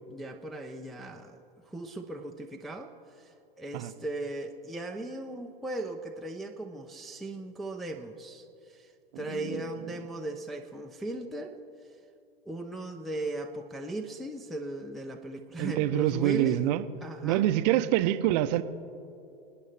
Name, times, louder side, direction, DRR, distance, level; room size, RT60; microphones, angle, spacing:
voice 1, 0.1-1.4 1.7-2.9 3.6-8.9 9.2-11.6 12.5-16.6 17.0-17.5, right 1 dB, ahead, 1 dB, 0.5 m, -37 dB
voice 2, 9.1-9.7 15.6-16.8 17.2-18.6, right 13 dB, 45° right, 12 dB, 0.6 m, -26 dB
27.0 x 9.3 x 3.2 m, 2.6 s
figure-of-eight pair, 95°, 29 cm